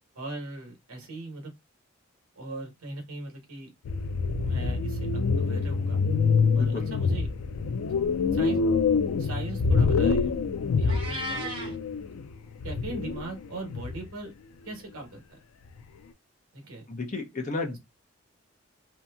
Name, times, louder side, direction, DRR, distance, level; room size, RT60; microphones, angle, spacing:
voice 1, 0.1-1.5 2.4-3.7 4.4-6.0 6.5-7.3 8.3-8.6 9.2-10.3 10.8-11.8 12.6-14.3 14.6-15.4 16.5-16.9 17.6-17.8, right 2 dB, 80° right, 1.1 m, -39 dB
sound 1, 3.9-12.3 12.6-14.0, left 4 dB, 80° left, 0.3 m, -26 dB
voice 2, 6.5-6.9 16.9-17.8, left 3 dB, 35° left, 0.7 m, -32 dB
Meow, 10.9-11.7, equal, 25° right, 1.1 m, -35 dB
2.8 x 2.6 x 2.2 m
head